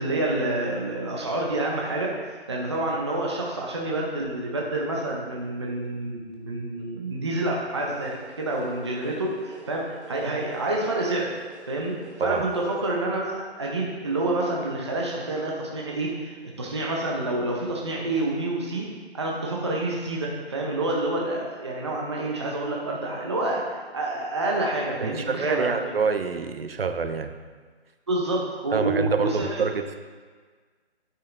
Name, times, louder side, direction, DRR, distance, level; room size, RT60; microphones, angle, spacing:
voice 1, 0.0-11.3 11.7-18.9 19.1-25.8 28.1-29.6, right 2 dB, 25° right, -2 dB, 0.7 m, -28 dB
sound 1, 7.7-13.0, right 4 dB, 80° right, 1.3 m, -47 dB
voice 2, 25.0-27.3 28.7-30.0, right 5 dB, 60° right, 8 dB, 0.7 m, -26 dB
8.9 x 5.7 x 3.8 m, 1.5 s
hypercardioid pair, 170°, 33 cm